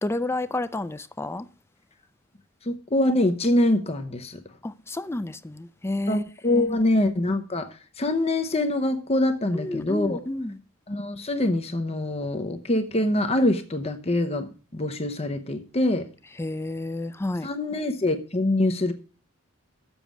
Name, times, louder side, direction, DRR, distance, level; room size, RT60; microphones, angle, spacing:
voice 1, 0.0-1.5 4.6-6.2 6.5-6.7 9.5-10.6 16.4-17.5, left 2 dB, 10° left, 0.4 m, -30 dB
voice 2, 2.7-4.4 6.1-7.7 8.0-10.2 10.9-16.1 17.4-18.9, left 1 dB, 30° left, 0.8 m, -24 dB
7.2 x 6.8 x 7.3 m
head